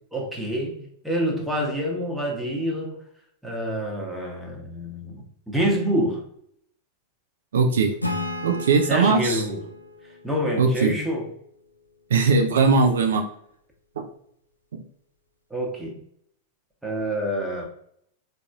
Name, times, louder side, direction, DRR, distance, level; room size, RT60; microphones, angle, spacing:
voice 1, 0.1-0.8 1.0-3.0 3.4-6.2 8.9-9.6 10.2-11.3 15.5-16.0 16.8-17.6, equal, ahead, -2 dB, 0.9 m, -27 dB
voice 2, 7.5-7.9 8.4-9.4 10.6-11.0 12.1-13.2 14.0-14.1, right 4 dB, 65° right, 5 dB, 0.3 m, -20 dB
Acoustic guitar / Strum, 8.0-11.5, left 2 dB, 85° left, 0.4 m, -34 dB
3.9 x 2.6 x 2.3 m, 0.69 s
figure-of-eight pair, 90°, 0 cm